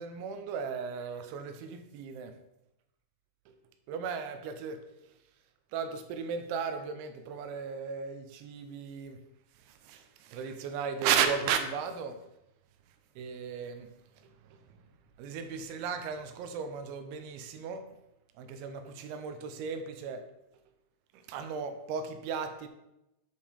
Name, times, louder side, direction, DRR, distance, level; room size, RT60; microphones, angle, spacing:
voice 1, 0.0-2.4 3.5-3.6 3.9-5.2 5.7-9.2 9.5-12.2 13.2-14.8 15.2-17.9 18.3-20.2 21.1-22.7, right 7 dB, 85° right, 7 dB, 3.0 m, -35 dB
10.0 x 4.5 x 3.6 m, 0.89 s
omnidirectional pair, 5.4 m